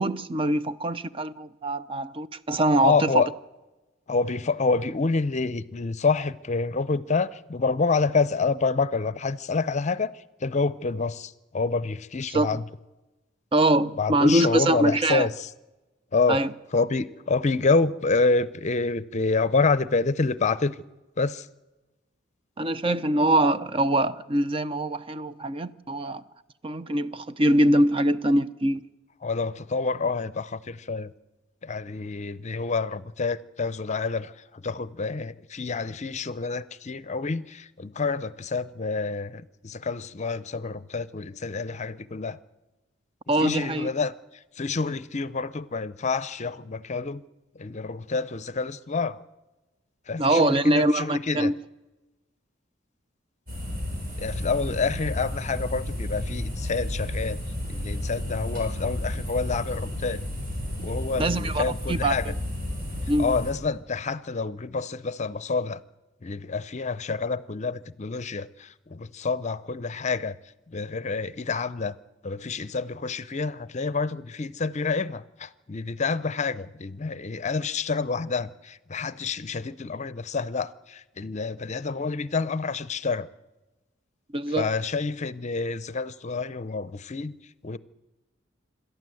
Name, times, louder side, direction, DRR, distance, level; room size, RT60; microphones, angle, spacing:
voice 1, 0.0-3.1 12.3-12.5 13.5-15.3 16.3-16.5 22.6-26.2 26.6-28.8 43.3-43.9 50.2-51.5 61.2-62.3 63.1-63.3 84.3-84.7, right 1 dB, 30° right, 0.6 m, -23 dB
voice 2, 2.8-3.3 4.1-12.6 14.0-15.5 16.1-16.4 16.7-20.8 21.2-21.5 29.2-31.1 31.6-42.4 43.4-44.1 44.6-47.2 47.5-49.2 50.1-51.5 54.2-57.4 57.7-60.2 60.8-62.3 63.2-65.8 66.2-70.4 70.7-71.9 72.2-83.3 84.6-87.3 87.6-87.8, left 4 dB, 40° left, 0.6 m, -28 dB
sound 1, 53.5-63.5, left 1 dB, 50° right, 6.7 m, -32 dB
27.0 x 12.5 x 7.8 m
head